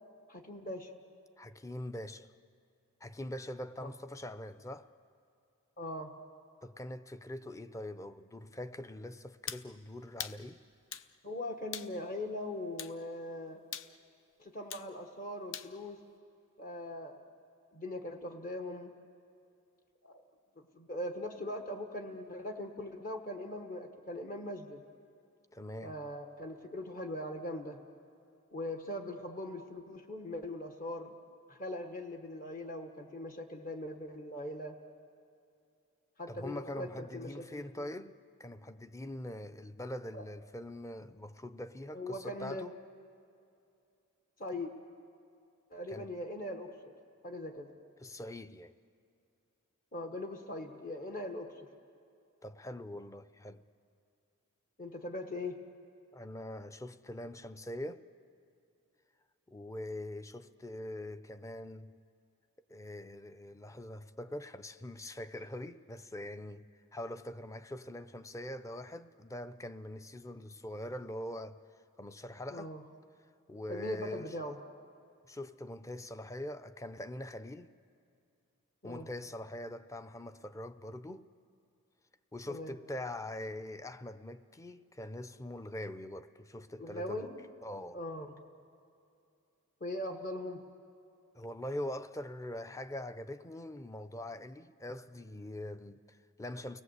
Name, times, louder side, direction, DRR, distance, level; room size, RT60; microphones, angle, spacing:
voice 1, 0.3-0.9 3.8-3.9 5.8-6.1 11.2-13.6 14.4-16.0 16.6-17.2 17.7-18.9 20.0-20.2 20.7-24.8 25.8-27.8 28.5-31.2 31.5-34.8 36.2-37.6 40.1-40.2 41.9-42.6 44.4-44.7 45.7-46.9 47.2-47.7 49.9-51.7 54.8-55.6 72.5-72.8 73.7-74.6 78.8-79.1 82.5-82.8 86.8-87.4 87.9-88.4 89.8-90.6, left 1 dB, 40° left, 1.3 m, -40 dB
voice 2, 1.4-2.3 3.0-4.9 6.6-10.6 25.5-26.0 36.3-38.1 38.4-42.7 45.9-46.1 48.0-48.7 52.4-53.6 56.1-58.0 59.5-62.0 62.7-66.7 66.9-71.6 72.0-72.7 73.5-74.3 75.2-77.7 78.8-81.3 82.3-87.3 87.6-88.0 91.3-96.8, left 1 dB, 15° left, 0.6 m, -43 dB
sound 1, 9.5-9.7 10.2-10.4 10.9-11.1 11.7-11.9 12.8-13.0 13.7-13.9 14.7-14.9 15.5-15.7, left 9 dB, 60° left, 0.8 m, -41 dB
30.0 x 19.5 x 8.1 m
head